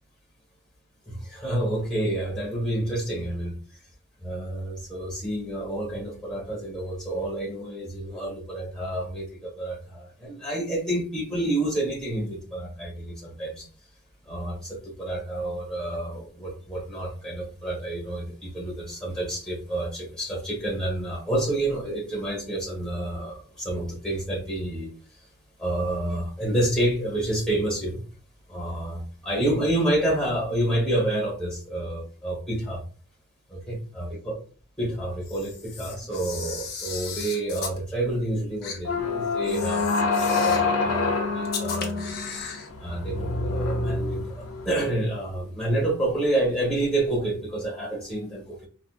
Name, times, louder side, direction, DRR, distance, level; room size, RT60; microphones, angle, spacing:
voice 1, 1.1-3.5 4.2-13.7 14.3-24.9 25.6-28.0 28.5-32.8 33.5-34.4 34.8-42.1 42.8-48.7, right 1 dB, 5° left, 1.3 m, -29 dB
Camera, 35.2-37.8 38.6-38.8 39.4-40.7 41.4-42.7, left 6 dB, 45° left, 0.7 m, -36 dB
sound 1, 38.8-44.9, left 3 dB, 90° left, 0.8 m, -26 dB
3.8 x 2.5 x 2.4 m
head